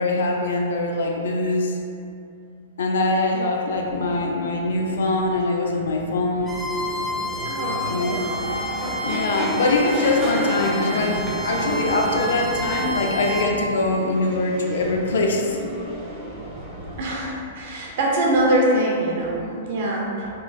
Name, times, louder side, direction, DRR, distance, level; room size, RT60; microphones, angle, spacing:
voice 1, 0.0-1.8 2.8-6.6 7.9-8.2 9.0-15.7, left 2 dB, 85° left, 1 dB, 0.4 m, -23 dB
sound 1, 3.7-17.3, right 1 dB, 25° right, 0.7 m, -32 dB
Bowed string instrument, 6.4-13.5, left 1 dB, 5° right, 0.3 m, -31 dB
voice 2, 7.4-9.0 11.8-11.9 17.0-20.3, right 1 dB, 55° right, -3 dB, 0.7 m, -24 dB
3.2 x 3.1 x 2.4 m, 2.6 s
hypercardioid pair, 150°, 0 cm